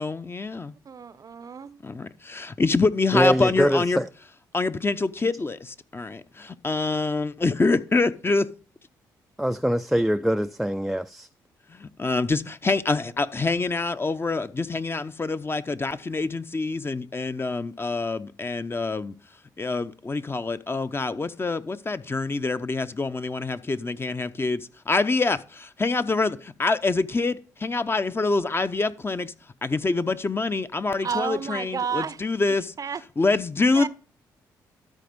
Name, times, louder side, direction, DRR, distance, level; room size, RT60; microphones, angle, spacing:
voice 1, 0.0-0.7 1.8-4.0 4.5-8.5 11.7-19.1 19.6-29.3 29.6-32.7 33.2-33.9, left 3 dB, 30° left, 0.7 m, -26 dB
voice 2, 0.9-1.8 30.9-32.2 32.8-33.0 33.7-33.9, right 6 dB, 45° right, 0.6 m, -31 dB
voice 3, 3.1-4.1 9.4-11.3, equal, ahead, 0.4 m, -23 dB
13.0 x 4.3 x 5.3 m
supercardioid pair, 55°, 8 cm